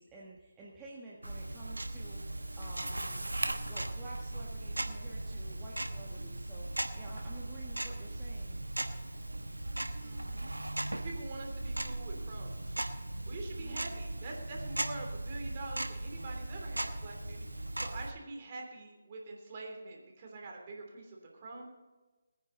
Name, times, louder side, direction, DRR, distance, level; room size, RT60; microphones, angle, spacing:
voice 1, 0.0-3.2 3.7-8.6 12.1-12.3 13.4-14.0, right 2 dB, 15° right, -6 dB, 1.7 m, -51 dB
Tick-tock, 1.2-18.1, right 1 dB, 85° right, 1.2 m, -38 dB
voice 2, 10.0-12.6 13.3-21.7, right 2 dB, 35° right, 1 dB, 3.1 m, -45 dB
20.5 x 9.9 x 4.0 m, 1.2 s
figure-of-eight pair, 150°, 0 cm